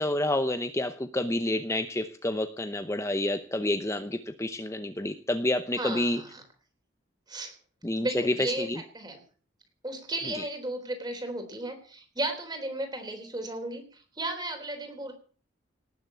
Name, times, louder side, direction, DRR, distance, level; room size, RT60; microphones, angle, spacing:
voice 1, 0.0-6.2 7.8-8.8 10.3-10.5, left 1 dB, 15° left, 8 dB, 0.8 m, -29 dB
voice 2, 5.8-6.4 7.3-7.5 8.0-8.7 8.9-9.2 9.8-15.1, right 2 dB, 20° right, 5 dB, 3.6 m, -34 dB
18.5 x 7.4 x 8.3 m, 0.43 s
head